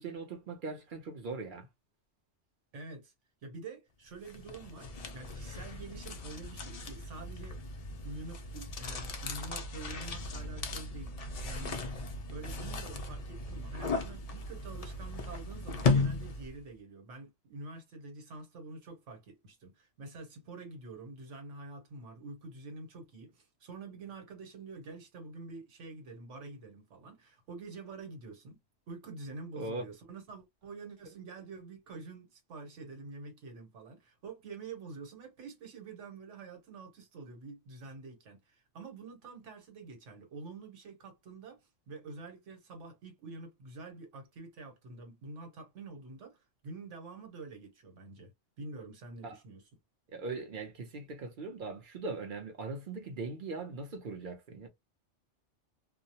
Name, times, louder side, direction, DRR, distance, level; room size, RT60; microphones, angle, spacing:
voice 1, 0.0-1.7 29.5-29.9 49.2-49.4 50.1-54.7, right 3 dB, 55° right, 0.7 m, -40 dB
voice 2, 2.7-3.1 3.4-7.6 8.0-11.8 12.3-28.6 28.9-48.3 48.6-49.6, right 3 dB, 85° right, 1.2 m, -47 dB
sound 1, 4.2-16.6, left 3 dB, 80° left, 0.3 m, -36 dB
2.3 x 2.0 x 2.7 m
omnidirectional pair, 1.2 m